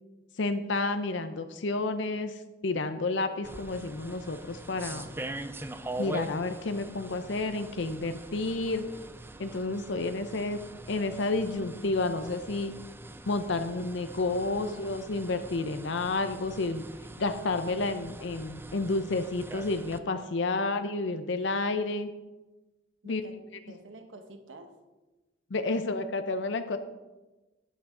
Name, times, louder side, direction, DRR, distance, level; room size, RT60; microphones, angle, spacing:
voice 1, 0.4-5.1 6.0-8.9 9.4-10.6 10.9-12.7 13.3-16.8 17.2-22.1 23.0-23.2 25.5-26.8, left 3 dB, 70° left, 9 dB, 0.6 m, -30 dB
sound 1, 3.4-20.0, right 2 dB, 10° right, 0.5 m, -43 dB
sound 2, 8.5-10.4, right 3 dB, 60° right, 0.9 m, -61 dB
voice 2, 14.5-14.9 20.5-20.7 23.0-23.4 23.7-24.8 25.7-25.8, right 2 dB, 90° right, 7 dB, 1.3 m, -49 dB
12.0 x 9.3 x 3.8 m, 1.1 s
head